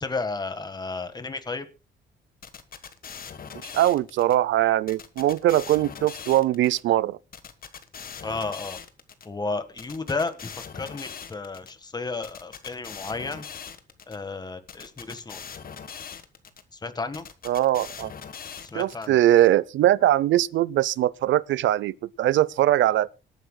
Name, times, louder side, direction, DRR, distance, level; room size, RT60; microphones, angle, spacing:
voice 1, 0.0-1.7 8.2-8.8 9.2-13.4 14.1-15.4 16.7-17.3 18.6-19.2, left 3 dB, 20° left, 1.4 m, -32 dB
sound 1, 2.4-4.3 4.9-6.8 7.3-9.2 9.8-11.7 12.2-14.2 14.7-16.6 17.1-19.1, left 7 dB, 45° left, 1.3 m, -41 dB
voice 2, 3.7-7.2 17.5-18.1 18.7-23.2, right 13 dB, 70° right, 0.5 m, -21 dB
25.0 x 9.2 x 2.2 m
cardioid pair, 90°, 20 cm